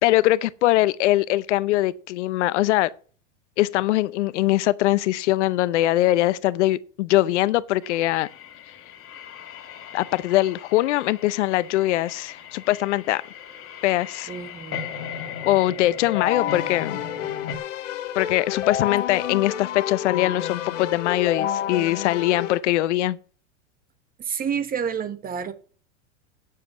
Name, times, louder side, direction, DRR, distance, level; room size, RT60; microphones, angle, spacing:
voice 1, 0.0-2.9 3.6-8.3 9.9-13.2 13.8-14.3 15.4-17.0 18.2-23.2, left 16 dB, 70° left, 0.7 m, -22 dB
sound 1, 7.8-17.6, left 8 dB, 35° left, 2.1 m, -38 dB
voice 2, 14.3-14.9 24.2-25.5, right 7 dB, 25° right, 1.3 m, -29 dB
Keyboard (musical), 16.1-22.6, left 10 dB, 90° left, 1.1 m, -29 dB
9.1 x 7.6 x 7.8 m
hypercardioid pair, 115°, 37 cm